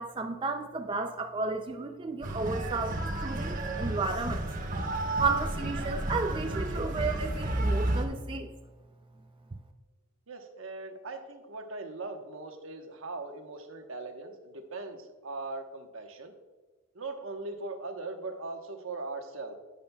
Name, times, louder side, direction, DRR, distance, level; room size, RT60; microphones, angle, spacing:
voice 1, 0.0-4.4 5.2-8.5, right 4 dB, 25° right, 5 dB, 0.4 m, -33 dB
sound 1, 2.2-8.1, right 1 dB, 40° right, 1.1 m, -31 dB
voice 2, 10.3-16.3 16.9-19.5, right 3 dB, 75° right, 4 dB, 1.1 m, -40 dB
11.0 x 8.7 x 2.3 m, 1.3 s
head